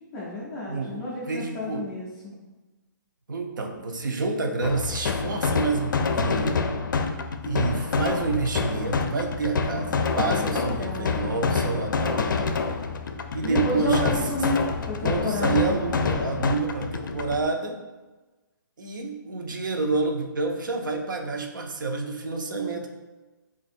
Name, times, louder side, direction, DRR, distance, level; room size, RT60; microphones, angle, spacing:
voice 1, 0.1-2.3 10.3-11.5 13.4-15.8, left 2 dB, 10° left, -6 dB, 0.3 m, -32 dB
voice 2, 0.7-1.9 3.3-6.6 7.4-12.5 13.3-14.2 15.0-17.8 18.8-22.9, right 3 dB, 70° right, 3 dB, 0.7 m, -28 dB
sound 1, 4.6-17.4, left 4 dB, 70° left, 0.4 m, -27 dB
3.7 x 2.5 x 4.2 m, 1.2 s
hypercardioid pair, 175°, 11 cm